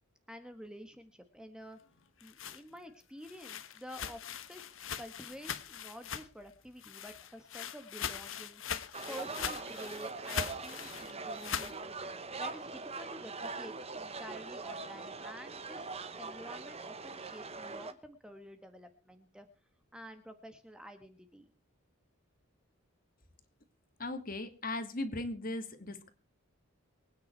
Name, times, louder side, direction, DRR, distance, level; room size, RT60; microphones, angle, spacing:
voice 1, 0.3-1.8 2.2-4.2 4.5-8.6 9.1-11.7 12.4-19.5 19.9-21.5, equal, 5° right, 7 dB, 1.5 m, -50 dB
sound 1, 2.0-6.5 6.8-11.8, left 8 dB, 65° left, 1.3 m, -41 dB
sound 2, 8.9-17.9, right 3 dB, 30° right, 1.2 m, -42 dB
voice 2, 24.0-26.1, left 2 dB, 40° left, 9 dB, 2.3 m, -38 dB
24.0 x 9.7 x 4.6 m, 0.35 s
head